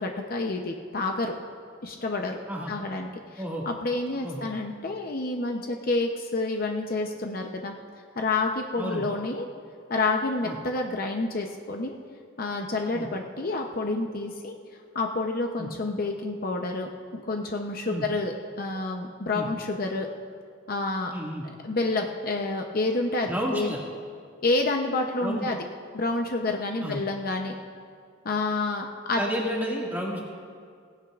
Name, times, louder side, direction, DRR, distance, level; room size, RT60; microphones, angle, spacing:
voice 1, 0.0-1.3 1.8-2.4 2.7-7.7 8.2-9.5 9.9-12.0 12.4-14.5 14.9-20.1 20.7-21.1 21.6-23.8 24.4-25.6 25.9-27.5 28.2-29.2, left 2 dB, 45° left, 3 dB, 0.7 m, -29 dB
voice 2, 21.1-21.4 23.3-23.8 25.2-25.5 26.8-27.0 29.2-30.2, equal, 10° right, -3 dB, 1.9 m, -31 dB
18.0 x 16.0 x 2.5 m, 2.2 s
head